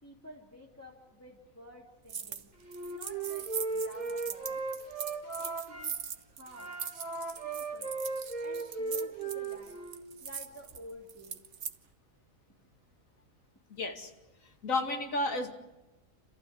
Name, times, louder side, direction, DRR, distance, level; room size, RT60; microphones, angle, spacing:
voice 1, 0.0-2.5 2.9-4.6 5.4-6.0 6.3-6.8 7.4-7.9 8.4-9.8 10.2-11.4, left 1 dB, 10° left, -2 dB, 2.9 m, -51 dB
sound 1, 2.1-2.4 2.7-11.8, right 7 dB, 55° right, 1.3 m, -41 dB
Wind instrument woodwind instrument, 2.6-5.9 6.5-10.0, right 3 dB, 30° right, 2.7 m, -37 dB
voice 2, 13.7-14.1 14.6-15.5, left 2 dB, 65° left, 4 dB, 2.7 m, -32 dB
28.5 x 15.0 x 9.6 m, 1.1 s
omnidirectional pair, 1.5 m